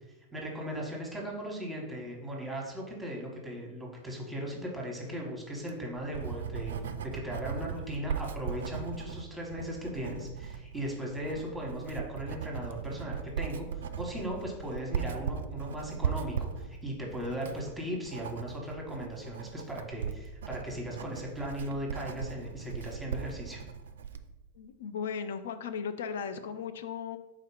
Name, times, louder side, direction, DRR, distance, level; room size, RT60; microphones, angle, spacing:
voice 1, 0.3-6.7 7.0-23.6, equal, 5° right, -2 dB, 1.1 m, -38 dB
Writing, 5.5-24.3, right 7 dB, 60° right, 0.3 m, -38 dB
voice 2, 24.6-27.2, left 6 dB, 60° left, 9 dB, 0.3 m, -36 dB
3.8 x 2.8 x 4.8 m, 1.0 s
figure-of-eight pair, 90°, 0 cm